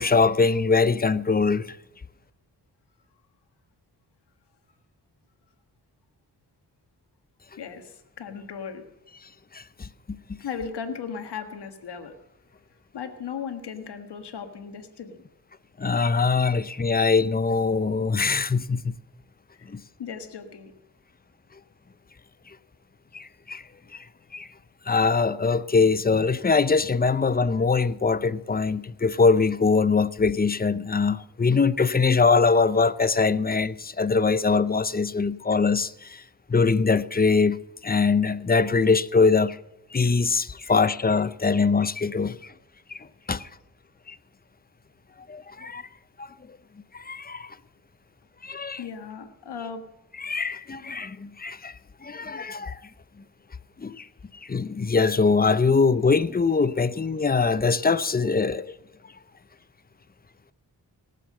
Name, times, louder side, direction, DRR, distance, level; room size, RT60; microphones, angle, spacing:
voice 1, 0.0-1.8 9.5-9.9 10.3-10.4 15.8-19.0 19.7-19.8 23.1-23.6 23.9-24.1 24.3-24.5 24.9-36.2 36.5-37.6 37.8-39.6 39.9-42.5 42.9-43.5 44.1-44.2 45.3-45.9 46.2-46.3 46.9-47.6 48.4-48.8 50.2-51.7 52.0-52.8 53.8-54.1 54.4-58.7, left 4 dB, 25° left, 0.6 m, -23 dB
voice 2, 7.6-8.8 10.4-12.1 12.9-15.2 19.5-19.7 20.0-20.7 48.8-49.8, left 6 dB, 90° left, 1.6 m, -36 dB
18.5 x 7.6 x 7.6 m
cardioid pair, 60°, 39 cm